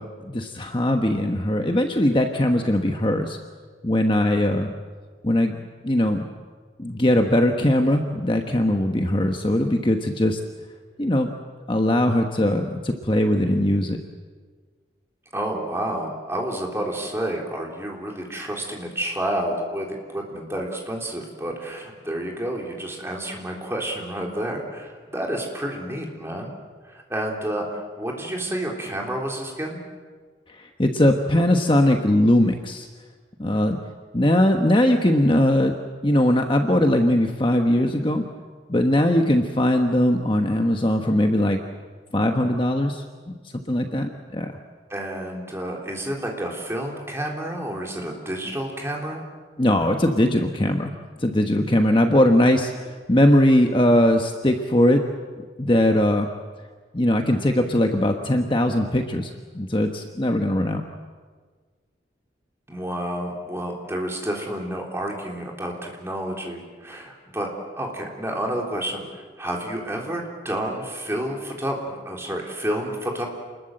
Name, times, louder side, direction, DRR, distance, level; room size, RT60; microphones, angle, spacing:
voice 1, 0.0-3.4 3.8-4.7 5.2-5.5 5.8-6.2 6.8-10.4 11.0-11.3 11.7-14.0 30.5-32.9 33.4-33.8 34.1-35.8 36.0-38.2 38.7-41.6 42.1-43.3 43.7-44.5 49.6-50.9 51.2-55.0 55.6-56.3 56.9-60.8, left 1 dB, 25° left, 4 dB, 1.1 m, -20 dB
voice 2, 15.3-26.5 26.8-29.8 44.9-49.3 62.7-67.5 67.8-73.3, right 1 dB, 15° right, 0 dB, 3.6 m, -30 dB
28.5 x 21.0 x 7.8 m, 1.5 s
head